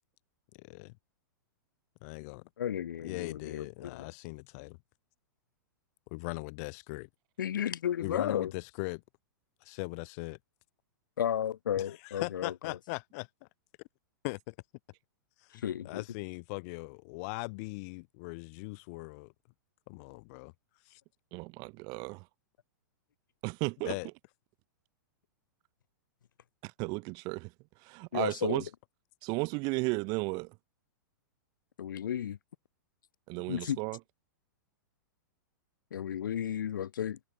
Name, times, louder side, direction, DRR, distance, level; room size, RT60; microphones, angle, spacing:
voice 1, 0.5-1.0 2.0-2.5 3.0-4.8 6.1-7.1 8.0-9.0 9.6-10.4 11.8-13.3 14.2-14.5 15.4-19.3 19.9-20.5 20.8-21.0 23.8-24.1, left 29 dB, 50° left, 1.5 m, -40 dB
voice 2, 2.6-4.1 7.4-8.5 11.2-12.8 15.5-16.0 28.1-28.7 31.8-32.4 33.5-33.8 35.9-37.2, left 9 dB, 75° left, 2.3 m, -33 dB
voice 3, 21.3-22.2 23.4-24.0 26.6-27.5 27.8-28.6 29.2-30.5 33.3-34.0, right 29 dB, 40° right, 0.7 m, -34 dB
hypercardioid pair, 120°, 11 cm